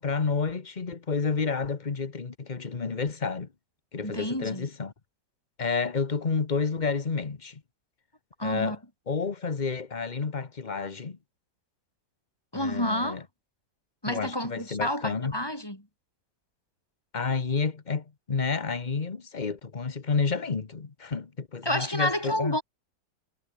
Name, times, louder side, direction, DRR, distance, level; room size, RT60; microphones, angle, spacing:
voice 1, 0.0-3.5 3.9-4.9 5.6-7.6 8.4-8.8 9.1-11.2 12.5-13.2 14.1-15.4 17.1-22.6, left 5 dB, 30° left, 1.2 m, -30 dB
voice 2, 4.0-4.7 8.4-8.8 12.5-13.2 14.0-15.8 21.6-22.6, left 1 dB, 10° left, 6.0 m, -29 dB
omnidirectional pair, 1.9 m